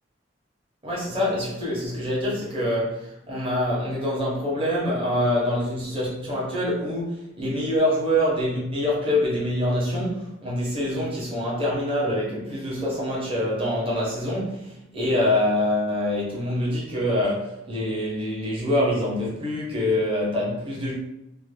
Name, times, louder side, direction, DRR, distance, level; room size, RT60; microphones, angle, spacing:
voice 1, 0.8-20.9, left 1 dB, 30° right, -5 dB, 1.0 m, -25 dB
2.7 x 2.1 x 3.3 m, 0.84 s
head